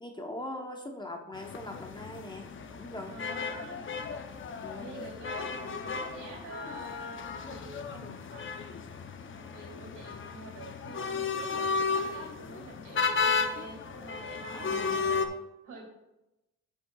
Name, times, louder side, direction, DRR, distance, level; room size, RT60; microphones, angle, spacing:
voice 1, 0.0-2.5 2.8-3.2 4.6-4.9 11.6-11.7 14.5-15.0, left 1 dB, 15° left, 3 dB, 0.9 m, -41 dB
sound 1, 1.3-15.3, left 4 dB, 40° left, 0.7 m, -34 dB
voice 2, 3.1-3.8 4.7-15.8, right 3 dB, 70° right, -1 dB, 2.9 m, -48 dB
10.5 x 6.5 x 2.4 m, 0.95 s
cardioid pair, 90°, 30 cm